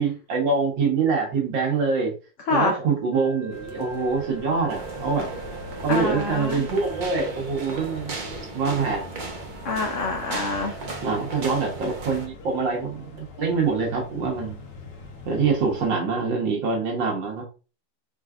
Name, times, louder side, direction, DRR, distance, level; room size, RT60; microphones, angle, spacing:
voice 1, 0.0-2.1 2.5-5.3 5.8-8.1 8.5-9.0 11.0-14.6 15.3-17.4, right 4 dB, 85° right, -1 dB, 2.0 m, -25 dB
voice 2, 2.5-2.8 5.9-6.7 9.6-10.8, left 3 dB, 55° left, 1 dB, 0.9 m, -26 dB
Wind instrument woodwind instrument, 3.1-7.5, right 8 dB, 10° right, 0.8 m, -41 dB
sound 1, 3.5-15.9, left 3 dB, 75° left, 1.7 m, -43 dB
sound 2, 4.7-12.3, right 3 dB, 50° right, 0.5 m, -36 dB
4.6 x 3.9 x 2.4 m, 0.33 s
omnidirectional pair, 1.9 m